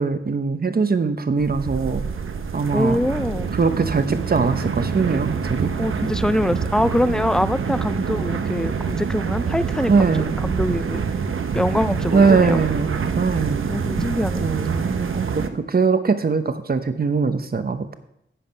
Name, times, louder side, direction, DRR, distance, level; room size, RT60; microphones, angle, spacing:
voice 1, 0.0-2.0 2.5-3.0 3.5-5.7 9.9-10.4 12.1-13.7 14.4-17.9, right 4 dB, 50° right, 9 dB, 0.9 m, -21 dB
sound 1, 1.4-15.5, right 6 dB, 90° right, 0.7 m, -26 dB
voice 2, 2.7-3.5 5.8-10.1 10.4-11.0 11.5-12.6 13.7-14.5, left 1 dB, 5° left, 15 dB, 0.3 m, -23 dB
10.0 x 8.0 x 5.3 m, 0.77 s
wide cardioid pair, 105°, 20 cm